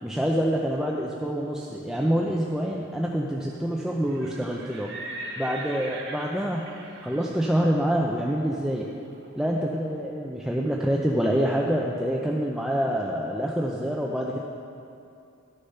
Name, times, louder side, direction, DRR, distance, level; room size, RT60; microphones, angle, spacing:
voice 1, 0.0-4.9 5.4-6.6 7.0-8.9 9.4-14.4, equal, 5° right, -2 dB, 0.5 m, -26 dB
Livestock farm animals working animals, 3.9-9.8, right 2 dB, 55° right, 1.6 m, -41 dB
13.0 x 6.7 x 5.5 m, 2.6 s
head